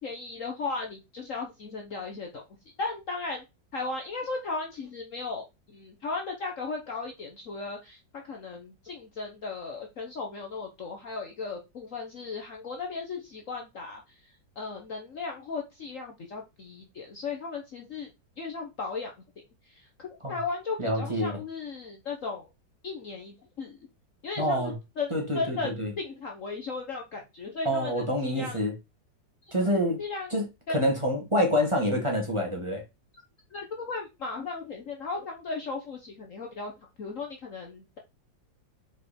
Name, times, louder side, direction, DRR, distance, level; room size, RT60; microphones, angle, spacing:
voice 1, 0.0-2.4 2.8-3.4 3.7-5.4 5.7-14.0 14.6-18.1 18.4-19.1 19.7-19.8 20.3-22.5 22.8-23.8 24.2-28.7 30.0-30.3 30.7-30.8 33.5-36.7 37.0-38.0, left 4 dB, 50° left, 1.3 m, -36 dB
voice 2, 20.8-21.4 24.4-24.7 25.1-25.9 27.6-28.7 29.5-30.0 30.3-30.4 30.7-32.8, equal, 15° right, 2.2 m, -27 dB
5.6 x 4.8 x 4.3 m
omnidirectional pair, 2.0 m